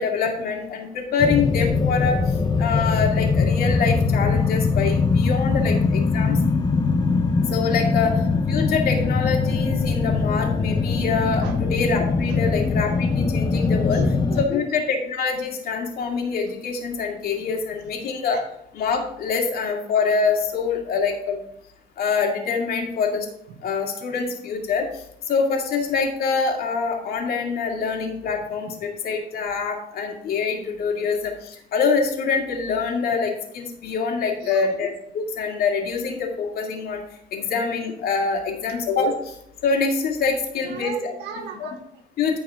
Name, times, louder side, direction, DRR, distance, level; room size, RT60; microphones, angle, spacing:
voice 1, 0.0-2.2 2.6-6.4 7.5-8.1 8.5-14.0 14.4-18.4 18.7-21.4 22.0-23.3 23.6-24.8 25.3-37.0 37.3-39.2 39.6-41.1 41.6-41.7 42.2-42.4, left 5 dB, 65° left, 1 dB, 2.3 m, -25 dB
sound 1, 1.2-14.4, left 4 dB, 25° left, 0.8 m, -21 dB
voice 2, 13.6-14.6 17.4-17.5 18.3-18.4 23.5-23.6 34.4-34.8 40.6-42.0, right 7 dB, 90° right, 6 dB, 1.3 m, -38 dB
13.5 x 4.8 x 3.7 m, 0.77 s
cardioid pair, 110°, 17 cm